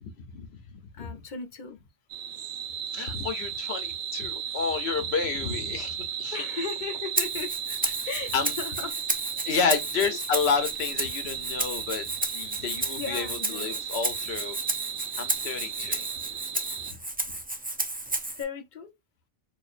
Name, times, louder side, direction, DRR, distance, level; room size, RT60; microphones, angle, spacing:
voice 1, 0.0-1.1 2.9-6.4 8.3-8.5 9.4-14.6 15.2-16.0 16.9-17.0, left 5 dB, 85° left, 1.1 m, -30 dB
voice 2, 0.9-1.8 6.3-7.6 7.9-9.0 9.7-10.2 13.0-13.8 15.4-16.1 18.4-18.9, left 5 dB, 50° left, 0.8 m, -37 dB
sound 1, 2.1-16.9, right 9 dB, 65° right, 0.7 m, -35 dB
Rattle (instrument), 7.2-18.4, right 2 dB, 15° right, 0.3 m, -32 dB
4.4 x 2.6 x 2.5 m
omnidirectional pair, 1.0 m